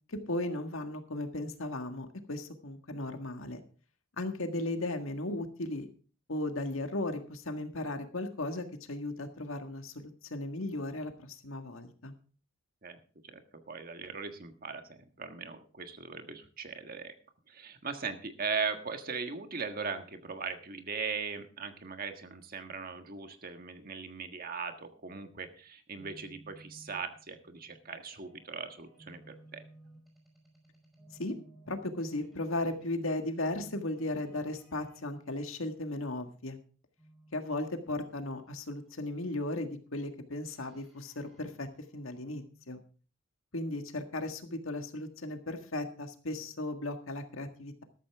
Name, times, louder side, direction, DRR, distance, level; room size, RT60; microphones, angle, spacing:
voice 1, 0.1-3.6 4.2-5.9 6.3-12.1 31.2-31.4 31.7-36.6 37.3-41.7 41.9-42.8 43.5-47.8, left 2 dB, 80° left, 6 dB, 1.7 m, -36 dB
voice 2, 13.7-17.1 17.5-29.6, right 5 dB, 45° right, 7 dB, 1.5 m, -39 dB
sound 1, 26.0-35.0 37.0-38.9 40.4-42.4, right 1 dB, ahead, 5.1 m, -57 dB
13.5 x 13.0 x 3.5 m, 0.39 s
head